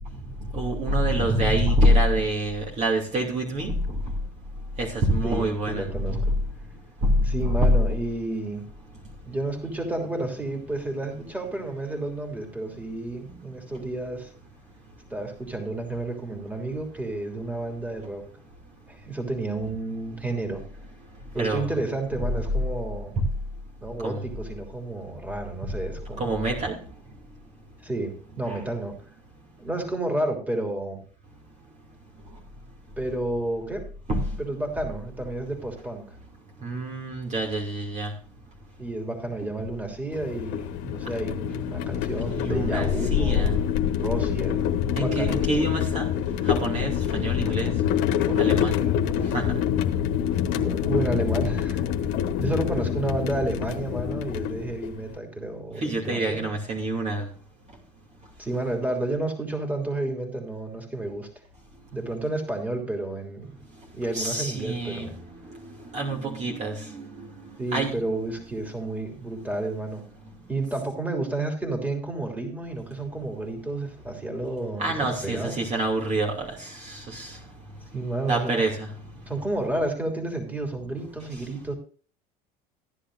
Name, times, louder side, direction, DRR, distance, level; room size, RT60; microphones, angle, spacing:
voice 1, 0.5-3.8 4.8-5.8 6.1-6.2 7.0-7.1 7.4-7.7 21.4-21.7 24.0-24.2 26.2-26.8 28.5-28.6 34.1-34.2 36.6-38.1 42.4-43.5 45.0-46.1 46.5-47.7 48.4-48.7 49.3-49.6 55.8-57.3 64.1-65.1 65.9-67.3 67.7-68.0 74.8-77.3 78.3-78.9, right 1 dB, 35° right, 2.7 m, -26 dB
voice 2, 5.2-6.4 7.2-8.6 9.2-14.3 15.1-18.2 18.9-20.6 21.3-23.1 23.8-26.3 27.8-29.0 29.6-31.0 33.0-33.9 34.4-36.1 38.8-43.6 44.0-44.6 44.9-45.4 47.5-47.7 48.1-49.3 50.5-51.8 52.4-56.5 58.4-61.3 61.9-63.6 63.9-65.1 67.6-70.0 70.5-75.6 77.9-78.6 79.3-81.7, right 2 dB, 5° right, 3.1 m, -31 dB
sound 1, 40.1-55.1, left 9 dB, 70° left, 1.2 m, -26 dB
15.0 x 10.5 x 2.6 m
supercardioid pair, 95°, 21 cm